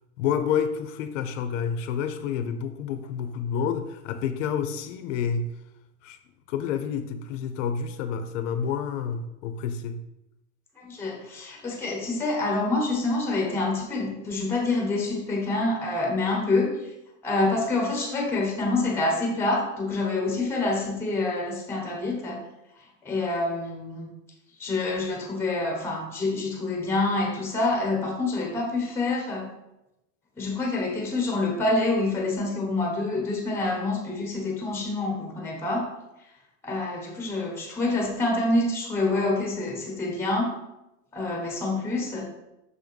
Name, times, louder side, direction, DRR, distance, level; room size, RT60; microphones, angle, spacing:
voice 1, 0.2-5.5 6.0-6.2 6.5-10.0, left 7 dB, 65° left, 9 dB, 0.7 m, -29 dB
voice 2, 10.8-16.7 17.2-22.4 23.0-24.1 24.6-29.5 30.4-35.9 36.6-40.5 41.1-42.3, left 2 dB, 5° left, 0 dB, 1.0 m, -27 dB
6.5 x 3.6 x 5.3 m, 0.92 s
supercardioid pair, 180°, 40 cm